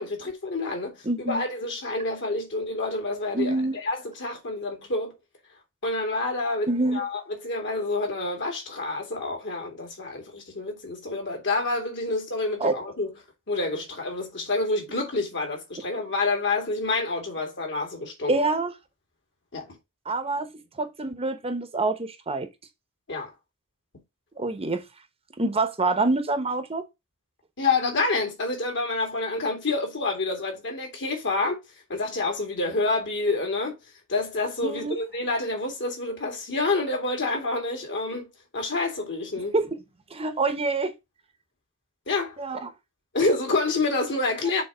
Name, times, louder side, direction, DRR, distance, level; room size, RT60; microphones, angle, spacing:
voice 1, 0.0-3.6 3.8-5.1 5.8-13.1 13.5-18.3 19.5-19.8 23.1-23.3 27.6-31.6 31.9-33.8 34.1-39.5 42.1-42.4 43.1-44.6, left 3 dB, 55° left, 2.4 m, -28 dB
voice 2, 1.0-1.4 3.3-3.8 6.7-7.0 12.6-12.7 18.3-18.7 20.1-22.5 24.4-24.8 25.4-26.8 34.6-35.0 39.5-39.7 40.1-40.9 42.4-42.7, right 2 dB, 25° right, 0.9 m, -26 dB
6.7 x 3.7 x 4.9 m
head